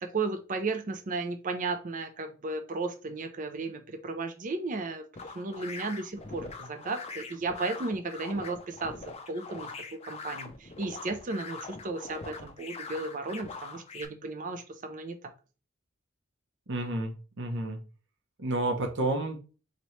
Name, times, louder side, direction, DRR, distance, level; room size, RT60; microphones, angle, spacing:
voice 1, 0.0-5.0 5.3-8.9 9.3-9.7 10.0-15.3, right 3 dB, 40° right, 7 dB, 0.5 m, -34 dB
sound 1, 5.1-14.0, left 4 dB, 30° left, 0.5 m, -43 dB
voice 2, 16.7-17.1 17.4-17.8 18.4-19.4, right 2 dB, 60° right, 4 dB, 0.9 m, -30 dB
4.1 x 3.0 x 3.1 m, 0.35 s
head